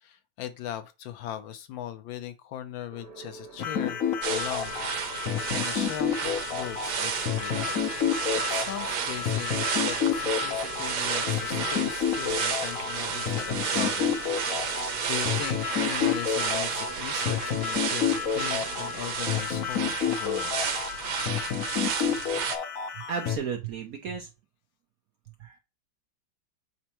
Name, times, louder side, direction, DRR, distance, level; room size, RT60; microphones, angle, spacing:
voice 1, 0.0-4.0 4.3-5.2 5.5-7.7 8.3-20.5, left 11 dB, 75° left, 1.4 m, -39 dB
sound 1, 2.9-19.1, right 4 dB, 40° right, 1.1 m, -45 dB
sound 2, 3.6-23.4, left 8 dB, 60° left, 0.9 m, -30 dB
sound 3, 4.2-22.6, right 7 dB, 80° right, 1.7 m, -32 dB
voice 2, 22.9-24.3 25.4-25.6, right 6 dB, 60° right, 0.9 m, -34 dB
7.6 x 4.3 x 3.0 m
omnidirectional pair, 2.2 m